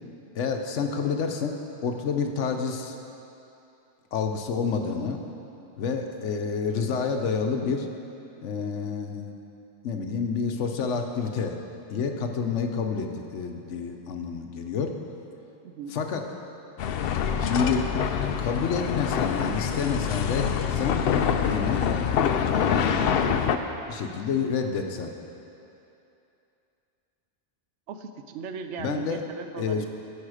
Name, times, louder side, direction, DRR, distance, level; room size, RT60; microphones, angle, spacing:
voice 1, 0.3-1.6 1.8-2.9 4.1-5.2 5.8-7.9 8.4-9.3 9.8-11.6 11.9-15.0 15.9-16.2 17.4-17.9 18.4-21.0 21.4-21.9 22.4-23.3 23.9-25.1 28.8-29.2 29.6-29.8, left 5 dB, 90° left, 4 dB, 1.1 m, -29 dB
voice 2, 15.6-16.0 22.7-23.1 27.9-29.9, right 5 dB, 80° right, 7 dB, 0.9 m, -38 dB
sound 1, 16.8-23.6, left 7 dB, 65° left, 0.7 m, -25 dB
16.0 x 5.5 x 4.9 m, 2.8 s
omnidirectional pair, 1.2 m